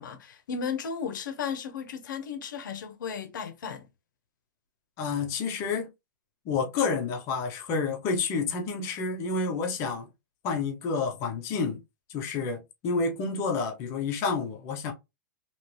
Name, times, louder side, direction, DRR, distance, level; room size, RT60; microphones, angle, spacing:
voice 1, 0.0-3.9, left 6 dB, 75° left, 0.8 m, -35 dB
voice 2, 5.0-5.9 6.5-10.1 10.4-11.8 12.1-14.9, left 4 dB, 25° left, 0.7 m, -29 dB
3.0 x 2.9 x 3.2 m
supercardioid pair, 165°, 11 cm